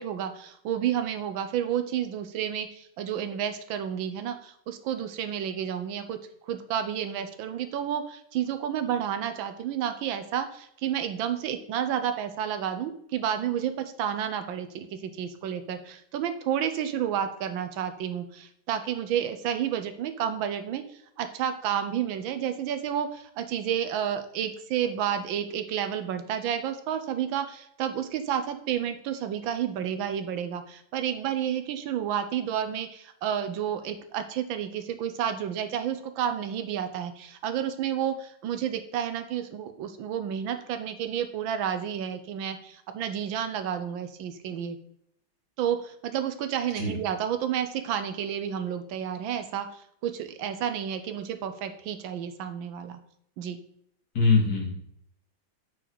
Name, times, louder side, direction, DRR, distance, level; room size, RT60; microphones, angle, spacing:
voice 1, 0.0-6.2 6.5-44.8 45.6-53.0 53.4-53.6, right 9 dB, 75° right, 9 dB, 1.4 m, -30 dB
voice 2, 54.1-54.7, left 4 dB, 55° left, -2 dB, 2.8 m, -22 dB
9.0 x 4.6 x 4.0 m, 0.71 s
omnidirectional pair, 2.2 m